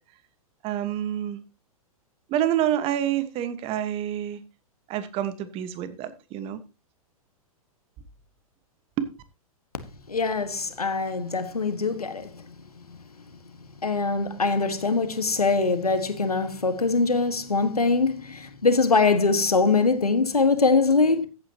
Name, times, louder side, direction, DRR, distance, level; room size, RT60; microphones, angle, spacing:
voice 1, 0.6-1.4 2.3-4.4 4.9-6.6 9.0-9.1, right 11 dB, 30° right, 1.3 m, -27 dB
voice 2, 10.1-12.4 13.8-21.3, left 4 dB, 80° left, 1.6 m, -23 dB
14.5 x 8.8 x 2.9 m
figure-of-eight pair, 105°, 19 cm